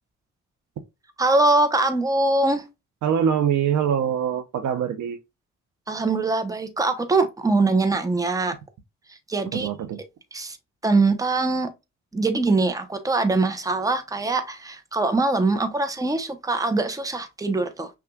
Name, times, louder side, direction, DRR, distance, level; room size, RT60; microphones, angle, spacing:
voice 1, 1.2-2.6 5.9-8.5 9.3-9.7 10.3-10.6 10.8-11.7 12.1-17.9, right 3 dB, 10° right, 0.8 m, -22 dB
voice 2, 3.0-5.2 9.5-10.0, right 8 dB, 70° right, 0.8 m, -23 dB
5.9 x 2.4 x 2.3 m
cardioid pair, 90°, 30 cm